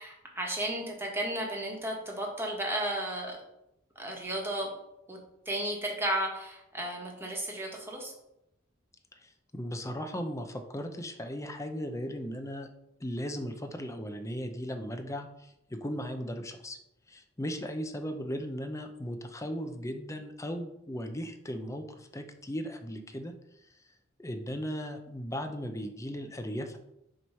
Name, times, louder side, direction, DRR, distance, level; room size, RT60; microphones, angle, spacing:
voice 1, 0.0-3.4 3.9-4.7 5.1-5.2 5.4-8.1, right 1 dB, 10° right, -1 dB, 1.4 m, -33 dB
voice 2, 9.1-12.7 13.0-16.8 17.1-23.3 23.6-23.8 24.2-26.8, equal, 15° left, 6 dB, 0.6 m, -37 dB
7.7 x 3.2 x 5.5 m, 0.84 s
head